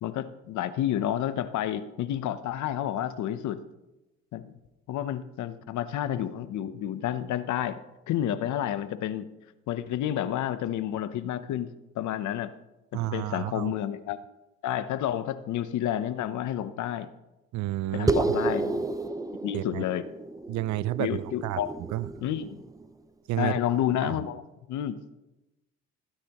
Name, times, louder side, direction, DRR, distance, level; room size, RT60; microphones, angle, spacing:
voice 1, 0.0-3.6 4.3-4.5 4.9-7.8 8.1-9.3 9.7-11.7 11.9-12.5 13.0-14.2 14.6-17.1 17.9-18.9 19.4-20.0 21.0-21.7 22.2-22.6 23.4-24.4 24.7-25.0, left 11 dB, 70° left, 13 dB, 0.8 m, -30 dB
voice 2, 12.9-13.7 17.5-18.4 19.5-19.8 20.5-21.6 21.9-22.1 23.3-23.5 24.0-24.2, right 16 dB, 70° right, 20 dB, 0.5 m, -31 dB
sound 1, 18.1-22.9, right 3 dB, 10° right, 0.5 m, -31 dB
19.5 x 9.9 x 3.0 m, 1.0 s
cardioid pair, 100°, 30 cm